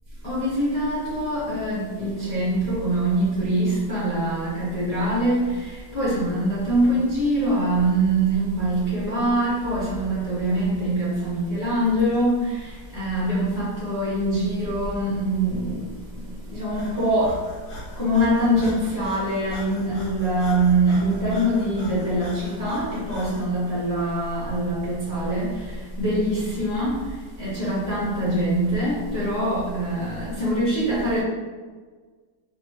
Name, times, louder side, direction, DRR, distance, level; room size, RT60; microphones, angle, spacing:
voice 1, 0.2-17.4 17.9-31.2, right 1 dB, 10° left, -10 dB, 1.2 m, -24 dB
Breathing, 16.7-23.5, left 1 dB, 45° left, 1.0 m, -41 dB
4.8 x 2.7 x 2.9 m, 1.4 s
omnidirectional pair, 1.9 m